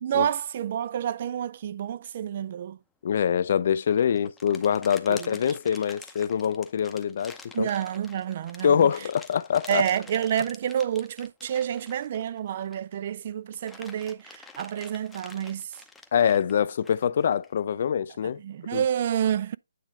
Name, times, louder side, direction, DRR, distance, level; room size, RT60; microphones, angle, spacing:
voice 1, 0.0-2.8 5.1-5.4 7.5-8.9 9.7-15.7 18.4-19.6, right 9 dB, 45° right, 0.3 m, -29 dB
voice 2, 3.0-7.7 8.6-9.9 16.1-18.4 18.7-18.8, left 8 dB, 55° left, 0.4 m, -24 dB
sound 1, 3.7-12.9 13.3-17.5, left 4 dB, 5° left, 0.7 m, -48 dB
9.1 x 3.2 x 5.2 m
hypercardioid pair, 145°, 0 cm